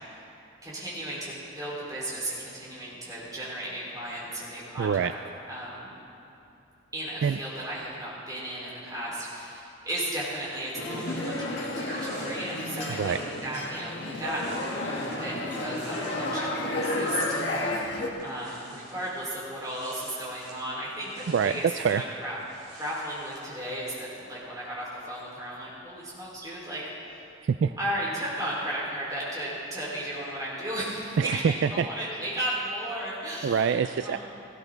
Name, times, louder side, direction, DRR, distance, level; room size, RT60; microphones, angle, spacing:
voice 1, 0.6-5.1 5.5-5.9 6.9-13.2 13.4-17.2 18.2-21.6 21.9-22.3 22.7-26.8 27.8-31.4 31.7-33.8 34.0-34.2, right 1 dB, 20° right, -7 dB, 4.5 m, -35 dB
voice 2, 4.8-5.1 7.2-7.4 12.9-13.2 21.3-22.0 27.4-27.8 31.2-32.1 33.4-34.2, right 6 dB, 60° right, 10 dB, 0.3 m, -25 dB
sound 1, 10.7-18.1, left 1 dB, 60° left, 1.6 m, -32 dB
sound 2, 10.8-16.5 16.8-23.5, right 2 dB, 40° right, 4.0 m, -51 dB
18.0 x 15.0 x 4.0 m, 2.7 s
head